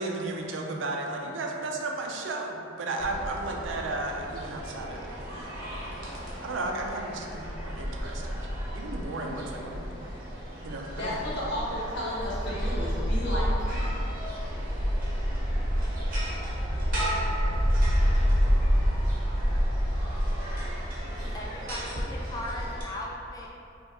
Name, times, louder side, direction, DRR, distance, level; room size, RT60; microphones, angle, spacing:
voice 1, 0.0-6.1 6.4-8.4 8.7-10.1 10.6-11.2, right 2 dB, 75° right, 1 dB, 0.5 m, -34 dB
sound 1, 3.0-22.8, equal, 50° right, 0.9 m, -29 dB
voice 2, 11.0-13.9, equal, 65° left, -7 dB, 1.1 m, -33 dB
voice 3, 21.1-23.5, left 1 dB, 20° left, -3 dB, 0.4 m, -38 dB
5.4 x 2.4 x 2.9 m, 2.7 s
head